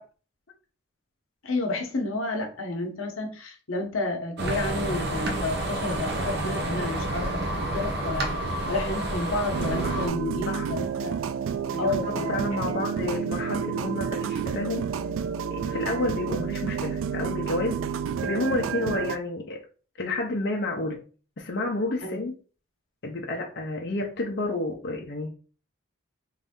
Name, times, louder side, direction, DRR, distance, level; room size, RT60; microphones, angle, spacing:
voice 1, 1.4-11.2 11.8-12.4 12.7-12.8 22.0-22.2, left 2 dB, 85° left, 0.9 m, -31 dB
sound 1, 4.4-10.1, right 1 dB, 50° right, 0.7 m, -29 dB
sound 2, 9.5-19.2, right 7 dB, 75° right, 0.3 m, -30 dB
voice 2, 11.7-14.9 15.5-17.8 18.2-19.6 20.0-21.1 21.4-22.4 23.0-25.3, left 2 dB, 55° left, 0.6 m, -30 dB
3.2 x 2.6 x 3.6 m
head